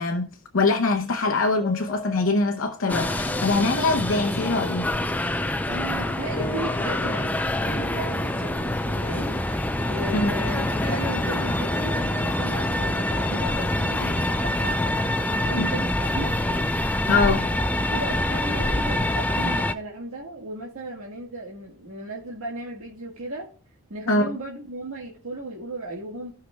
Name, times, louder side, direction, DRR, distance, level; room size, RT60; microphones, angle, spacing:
voice 1, 0.0-4.9 10.1-10.3 15.6-15.7 17.1-17.5 24.1-24.3, left 3 dB, 70° left, 0.8 m, -23 dB
sound 1, 1.6-16.6, left 1 dB, 25° left, 0.8 m, -39 dB
sound 2, 2.9-19.7, left 1 dB, 10° left, 0.4 m, -26 dB
voice 2, 5.6-9.4 9.9-14.8 15.3-16.4 17.9-23.5 23.9-26.3, right 1 dB, 90° right, 1.7 m, -36 dB
15.5 x 5.7 x 2.3 m
head